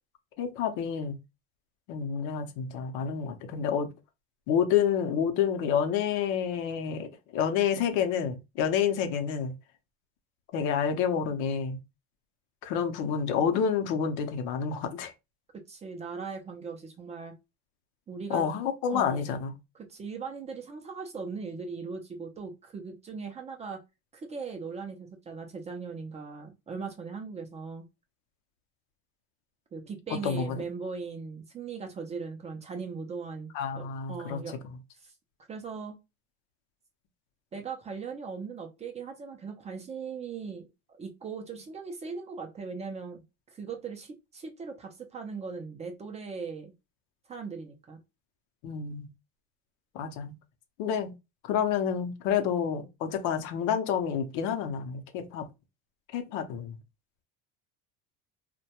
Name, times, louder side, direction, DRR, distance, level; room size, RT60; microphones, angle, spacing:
voice 1, 0.4-1.2 1.9-3.9 4.5-9.5 10.5-11.8 12.6-15.1 18.3-19.5 30.2-30.6 33.5-34.5 48.6-49.1 49.9-50.3 50.8-51.1 51.4-55.5 56.1-56.8, left 7 dB, 70° left, 0.6 m, -29 dB
voice 2, 15.7-17.3 18.1-18.5 18.9-19.3 19.9-23.8 24.1-27.8 29.7-34.6 35.0-35.1 35.5-36.0 37.5-43.2 43.5-46.7 47.3-48.0, right 5 dB, 20° right, 0.4 m, -39 dB
2.2 x 2.1 x 2.8 m
cardioid pair, 125°, 31 cm